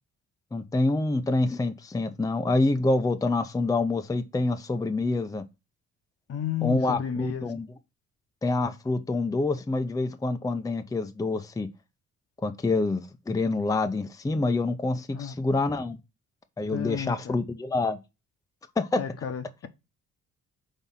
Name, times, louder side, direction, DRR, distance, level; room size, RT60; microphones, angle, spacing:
voice 1, 0.5-5.4 6.6-7.7 8.4-11.7 12.4-16.0 16.6-18.0 18.8-19.0, left 2 dB, 10° left, 0.6 m, -26 dB
voice 2, 6.3-7.5 15.1-15.3 16.7-17.4 19.0-19.7, left 8 dB, 50° left, 0.9 m, -32 dB
5.5 x 3.6 x 5.6 m
cardioid pair, 90°, 30 cm